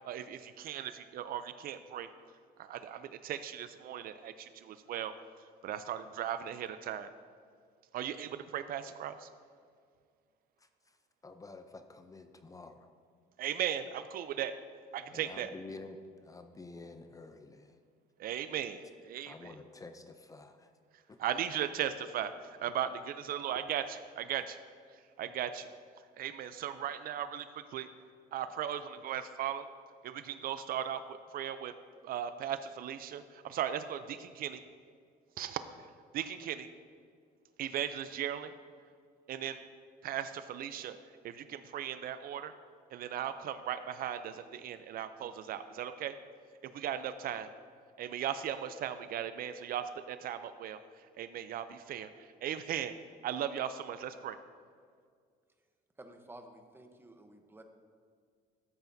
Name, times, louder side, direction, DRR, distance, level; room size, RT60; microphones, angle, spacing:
voice 1, 0.0-2.1 2.6-5.1 5.6-7.1 7.9-9.3 13.4-14.5 14.9-15.5 18.2-19.3 21.2-24.6 24.9-25.7 26.2-27.9 28.3-29.7 30.0-31.7 32.0-34.6 35.4-35.6 36.1-36.7 37.6-38.5 39.3-39.6 40.0-41.0 41.2-42.5 42.9-46.1 46.6-47.5 48.0-50.8 51.2-52.9 53.2-54.4, right 10 dB, 60° right, 11 dB, 0.4 m, -37 dB
voice 2, 10.6-11.0 11.2-12.9 15.1-17.8 19.2-20.7 21.1-21.2, left 3 dB, 20° left, 8 dB, 0.5 m, -49 dB
voice 3, 56.0-57.6, right 1 dB, 15° right, 6 dB, 0.8 m, -52 dB
13.0 x 8.0 x 2.7 m, 2.1 s
cardioid pair, 110°, 17 cm